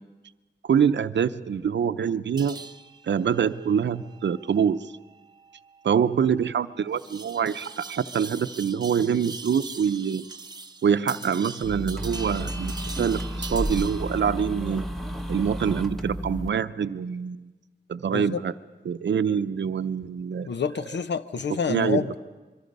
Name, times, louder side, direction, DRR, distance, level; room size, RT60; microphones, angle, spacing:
voice 1, 0.6-2.6 3.0-4.9 5.8-10.2 10.8-12.7 13.0-14.8 15.3-17.5 17.9-18.5 18.9-20.5 21.7-22.0, right 7 dB, 85° right, 12 dB, 0.6 m, -25 dB
sound 1, 2.4-14.2, right 3 dB, 25° right, 0.6 m, -42 dB
sound 2, 11.6-16.5, equal, ahead, 1.0 m, -32 dB
voice 2, 18.1-18.4 20.5-22.2, left 6 dB, 75° left, 12 dB, 0.8 m, -28 dB
25.0 x 24.0 x 5.4 m, 1.3 s
wide cardioid pair, 110°, 18 cm